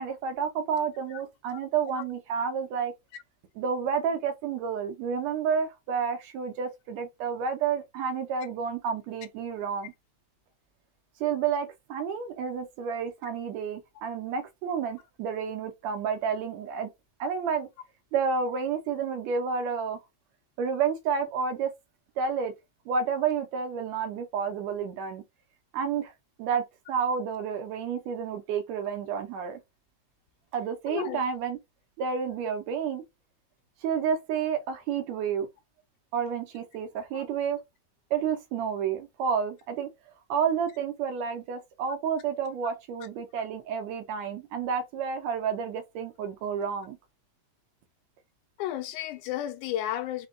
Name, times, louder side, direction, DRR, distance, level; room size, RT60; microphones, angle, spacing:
voice 1, 0.0-2.9 3.6-9.9 11.2-16.9 17.2-17.7 18.1-20.0 20.6-21.7 22.2-22.5 22.9-25.2 25.7-26.1 26.4-29.6 30.5-31.6 32.0-33.0 33.8-35.5 36.1-37.6 38.1-39.9 40.3-47.0, right 6 dB, 75° right, 1.8 m, -30 dB
voice 2, 30.9-31.2 37.1-37.2 48.6-50.3, left 12 dB, 80° left, 2.1 m, -33 dB
5.1 x 2.2 x 3.7 m
omnidirectional pair, 3.5 m